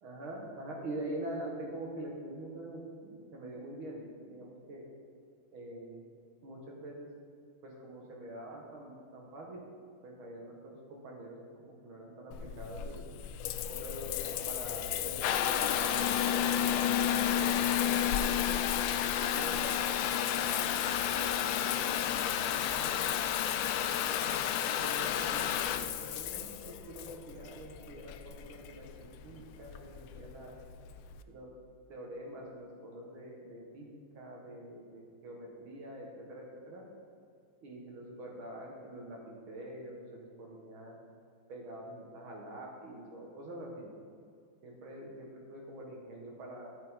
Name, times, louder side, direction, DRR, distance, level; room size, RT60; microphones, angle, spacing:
voice 1, 0.0-4.9 5.5-6.1 6.4-7.1 7.6-9.7 10.0-13.0 13.7-18.5 19.0-23.0 24.1-24.4 24.8-25.5 25.8-30.6 31.3-31.5 31.9-36.8 37.6-41.0 41.5-43.9 44.6-46.7, right 1 dB, 90° right, -2 dB, 2.4 m, -45 dB
Water tap faucet / Bathtub (filling or washing) / Trickle dribble, 12.3-31.2, left 10 dB, 75° left, 1.2 m, -32 dB
11.5 x 9.6 x 3.7 m, 2.3 s
omnidirectional pair, 2.2 m